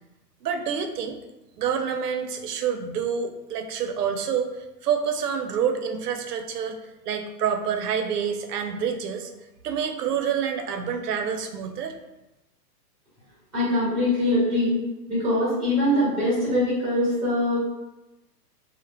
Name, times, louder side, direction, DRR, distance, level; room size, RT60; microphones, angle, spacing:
voice 1, 0.4-1.2 1.6-6.8 7.1-11.9, right 7 dB, 70° right, 5 dB, 0.5 m, -27 dB
voice 2, 13.5-14.8 15.1-17.6, left 1 dB, ahead, -9 dB, 0.8 m, -23 dB
2.1 x 2.1 x 3.2 m, 0.97 s
hypercardioid pair, 165°, 50 cm